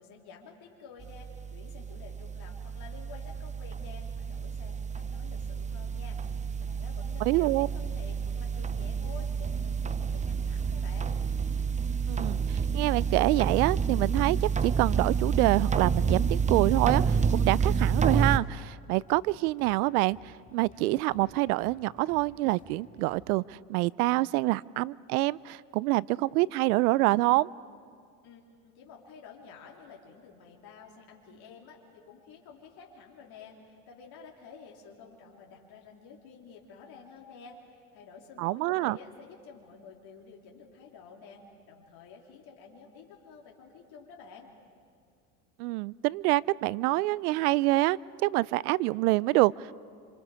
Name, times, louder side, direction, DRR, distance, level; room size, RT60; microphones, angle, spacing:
voice 1, 0.0-11.1 28.2-44.5, left 5 dB, 55° left, -1 dB, 3.3 m, -51 dB
sound 1, 1.0-18.4, right 6 dB, 15° right, 0.7 m, -29 dB
voice 2, 7.3-7.7 12.1-20.2 20.5-27.5 38.4-39.0 45.6-49.7, right 20 dB, 80° right, 23 dB, 0.6 m, -26 dB
sound 2, 8.5-23.4, left 2 dB, 15° left, 2.0 m, -56 dB
26.5 x 26.5 x 4.9 m, 2.2 s
supercardioid pair, 95°, 44 cm